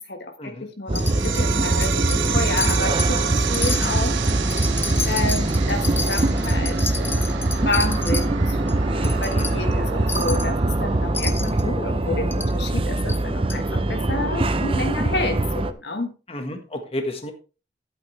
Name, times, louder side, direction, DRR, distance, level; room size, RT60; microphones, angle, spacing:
voice 1, 0.0-4.2 5.0-7.3 7.6-8.6 8.9-16.1, left 2 dB, 65° left, 6 dB, 1.5 m, -30 dB
Wind chime, 0.9-1.5 1.8-2.3 2.6-3.2 3.5-8.3 8.7-8.8 9.0-9.5 10.1-10.5 11.1-11.6 12.3-12.5 13.1-13.2 13.5-13.6, left 4 dB, 10° left, 0.7 m, -31 dB
sound 1, 0.9-15.7, right 2 dB, 30° right, 0.6 m, -23 dB
sound 2, 0.9-11.9, right 8 dB, 80° right, 0.9 m, -31 dB
voice 2, 9.4-9.7 16.3-17.3, left 1 dB, 30° left, 5 dB, 1.5 m, -31 dB
12.5 x 8.4 x 3.3 m, 0.33 s
head